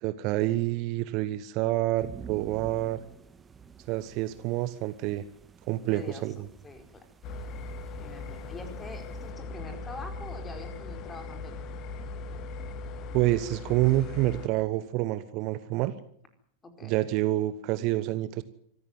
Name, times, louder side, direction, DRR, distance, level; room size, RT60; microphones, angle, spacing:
voice 1, 0.0-3.0 3.9-5.2 5.7-6.5 13.1-15.9 16.8-18.4, right 16 dB, 40° right, 14 dB, 1.1 m, -28 dB
sound 1, 2.0-9.3, right 6 dB, 20° right, 1.7 m, -50 dB
voice 2, 5.9-6.3 6.6-7.0 8.0-11.6 16.6-17.0, left 3 dB, 15° left, 6 dB, 4.8 m, -44 dB
sound 2, 7.2-14.5, left 3 dB, 35° left, 1.8 m, -39 dB
25.0 x 14.0 x 9.4 m, 0.65 s
figure-of-eight pair, 90°, 0 cm